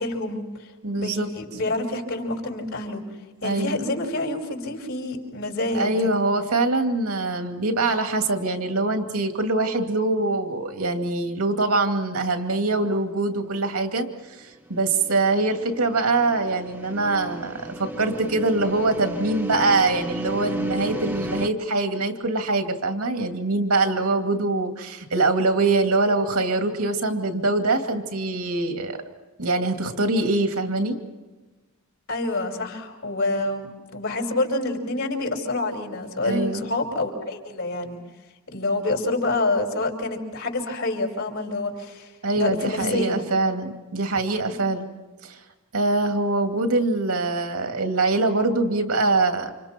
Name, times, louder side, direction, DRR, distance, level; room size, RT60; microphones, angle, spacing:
voice 1, 0.0-0.7 0.9-3.0 3.4-6.1 32.1-38.0 38.5-42.1 42.3-43.3 44.5-44.6, left 2 dB, 60° left, 1 dB, 5.3 m, -27 dB
voice 2, 0.8-1.3 3.4-3.9 5.7-14.1 14.4-29.0 29.4-31.0 36.2-36.6 42.2-44.9 45.2-45.4 45.7-49.5, right 2 dB, 80° right, 4 dB, 2.6 m, -23 dB
sound 1, 14.7-21.5, right 1 dB, 10° right, 1.1 m, -34 dB
29.5 x 27.5 x 4.5 m, 1.2 s
head